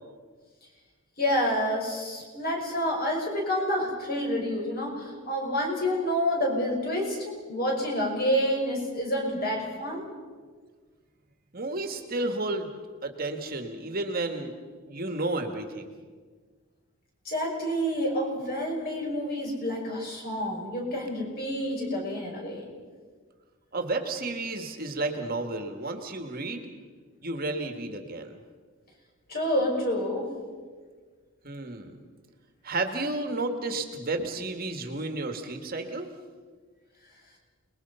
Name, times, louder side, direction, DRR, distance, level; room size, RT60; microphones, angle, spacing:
voice 1, 1.2-10.0 17.2-22.7 29.3-30.3, equal, 45° left, 0 dB, 5.9 m, -28 dB
voice 2, 11.5-12.7 13.0-14.5 14.8-15.9 23.7-26.7 27.2-28.4 31.4-32.0 32.6-36.1, right 2 dB, 45° right, 5 dB, 1.9 m, -32 dB
28.5 x 21.0 x 5.7 m, 1.5 s
head